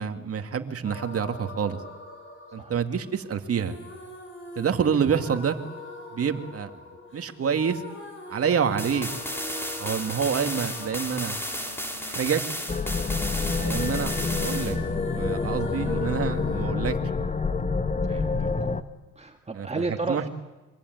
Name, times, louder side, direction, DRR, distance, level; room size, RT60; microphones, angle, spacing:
voice 1, 0.0-1.8 2.5-3.8 4.6-5.6 6.1-6.7 7.1-7.8 8.3-9.1 9.8-11.4 12.0-12.4 13.6-14.8 15.1-17.0 19.6-19.7 20.1-20.2, right 7 dB, 50° right, 7 dB, 2.3 m, -27 dB
sound 1, 0.8-13.8 14.1-16.7, left 2 dB, 40° left, 7.6 m, -42 dB
sound 2, 8.8-14.8, equal, 5° left, 3.9 m, -33 dB
sound 3, 12.7-18.8, left 4 dB, 25° left, 1.5 m, -27 dB
voice 2, 13.3-13.6 18.0-18.3 18.6-18.7 19.2-20.3, right 3 dB, 20° right, 4 dB, 1.8 m, -33 dB
25.0 x 23.5 x 9.5 m, 1.1 s
cardioid pair, 90°, 30 cm